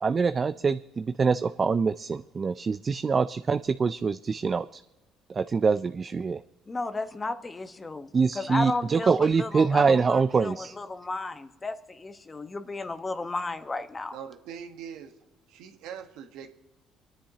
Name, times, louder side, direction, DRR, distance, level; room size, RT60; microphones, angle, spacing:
voice 1, 0.0-4.8 5.3-6.4 8.1-10.8, right 5 dB, 35° right, 12 dB, 0.4 m, -25 dB
voice 2, 6.7-8.1 8.3-14.2, left 3 dB, 25° left, 9 dB, 1.1 m, -33 dB
voice 3, 14.1-15.2 15.5-16.5, right 8 dB, 80° right, 6 dB, 1.2 m, -42 dB
29.0 x 10.0 x 2.8 m, 1.0 s
supercardioid pair, 70°, 0 cm